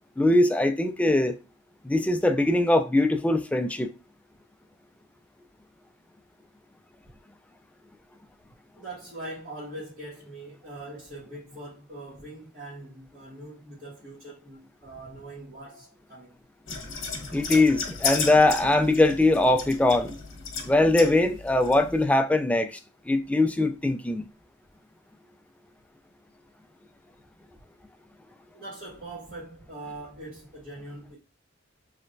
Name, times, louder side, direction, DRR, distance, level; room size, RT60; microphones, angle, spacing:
voice 1, 0.2-1.4 1.8-3.9 17.3-20.1 20.7-22.8 23.1-24.2, left 2 dB, 5° left, 0.3 m, -21 dB
voice 2, 8.7-16.4 28.5-31.2, right 2 dB, 45° right, 1.6 m, -42 dB
sound 1, 16.7-22.0, left 5 dB, 75° left, 1.0 m, -34 dB
3.2 x 2.9 x 2.6 m
head